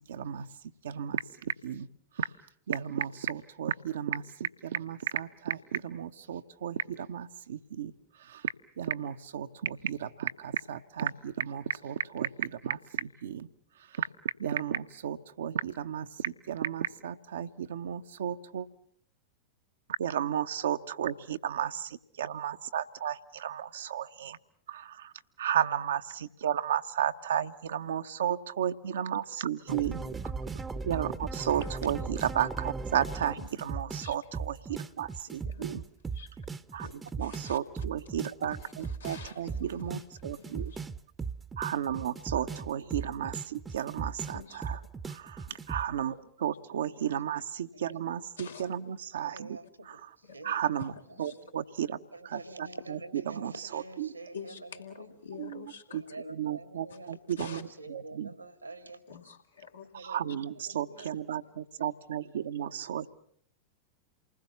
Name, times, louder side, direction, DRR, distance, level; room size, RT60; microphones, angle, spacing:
voice 1, 0.1-0.5 0.8-1.9 2.2-2.3 2.7-7.9 8.2-13.5 13.9-14.1 14.4-18.7 20.0-24.4 24.7-25.1 25.4-30.0 30.9-35.8 36.7-36.9 37.2-40.7 41.6-44.8 45.1-49.6 49.8-50.0 50.4-50.9 51.2-53.0 53.3-54.1 55.4-55.6 55.9-56.0 56.3-58.3 59.9-63.1, right 9 dB, 65° right, 9 dB, 1.0 m, -33 dB
sound 1, 29.7-45.9, right 4 dB, 15° right, 0.9 m, -38 dB
voice 2, 35.4-35.8 36.1-36.3 36.8-37.6 38.6-40.8 41.7-41.8 44.3-44.9 45.5-45.6 46.0-46.2 48.4-48.7 50.2-50.5 51.2-51.4 54.3-56.1 56.9-57.0 57.4-57.6 59.1-59.9 61.0-61.1, left 6 dB, 75° left, 1 dB, 2.7 m, -48 dB
voice 3, 49.2-50.8 51.3-51.5 52.1-55.2 55.9-59.0 59.8-61.2 61.4-61.6, right 2 dB, 85° right, 10 dB, 2.2 m, -47 dB
28.5 x 20.5 x 7.1 m, 0.63 s
figure-of-eight pair, 90°, 0 cm